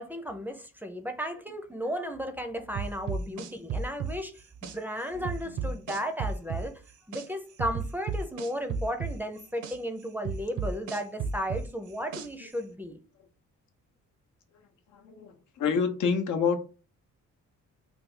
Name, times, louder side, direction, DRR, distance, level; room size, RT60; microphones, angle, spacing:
voice 1, 0.0-6.8 7.1-13.0, equal, 5° right, 0.5 m, -34 dB
sound 1, 2.8-4.8 5.3-7.3 7.6-9.8 10.3-12.5, right 5 dB, 75° right, 0.7 m, -33 dB
voice 2, 5.1-5.7 12.4-12.5 14.9-16.7, left 6 dB, 80° left, 0.8 m, -29 dB
3.4 x 2.3 x 3.6 m
cardioid pair, 90°, 30 cm